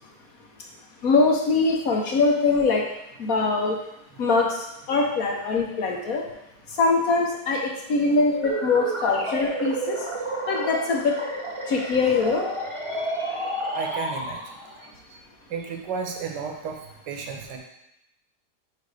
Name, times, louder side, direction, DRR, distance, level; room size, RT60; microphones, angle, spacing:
voice 1, 1.0-2.9 3.2-3.8 4.2-6.2 6.8-10.0 10.5-11.2 11.7-12.5 12.9-13.3, left 3 dB, 60° left, 0 dB, 1.2 m, -23 dB
sound 1, 8.3-14.8, right 1 dB, 55° right, 0.3 m, -31 dB
voice 2, 13.7-14.5 15.1-15.2 15.5-17.6, right 5 dB, 75° right, 3 dB, 1.5 m, -33 dB
5.1 x 4.7 x 4.8 m, 0.86 s
omnidirectional pair, 1.8 m